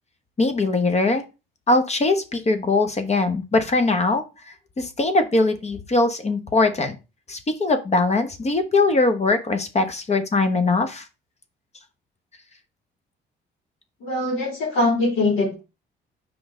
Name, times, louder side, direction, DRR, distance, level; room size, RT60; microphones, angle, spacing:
voice 1, 0.4-1.2 1.7-4.2 4.8-7.0 7.3-11.0, left 3 dB, 35° left, 8 dB, 1.0 m, -21 dB
voice 2, 14.0-15.6, left 2 dB, 90° left, -2 dB, 3.4 m, -22 dB
6.1 x 4.7 x 3.7 m, 0.29 s
cardioid pair, 90°, 20 cm